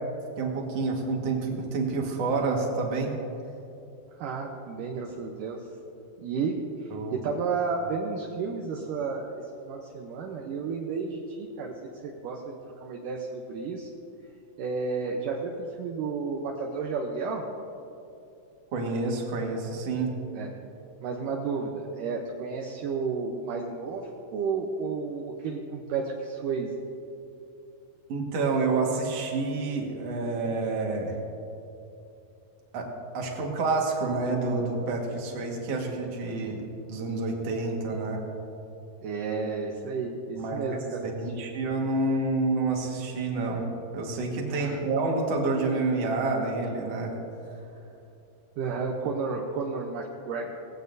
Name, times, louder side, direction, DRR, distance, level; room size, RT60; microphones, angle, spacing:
voice 1, 0.4-3.1 6.9-7.2 18.7-20.1 28.1-31.2 32.7-32.9 33.1-38.2 40.4-43.7 43.9-47.1, right 3 dB, 50° right, 0 dB, 2.1 m, -28 dB
voice 2, 4.2-5.6 6.2-13.9 14.6-17.4 20.4-20.5 21.0-26.7 39.0-41.0 41.3-41.5 44.5-44.8 48.6-50.6, right 4 dB, 75° right, 0 dB, 2.0 m, -32 dB
19.0 x 16.0 x 2.7 m, 2.7 s
omnidirectional pair, 4.7 m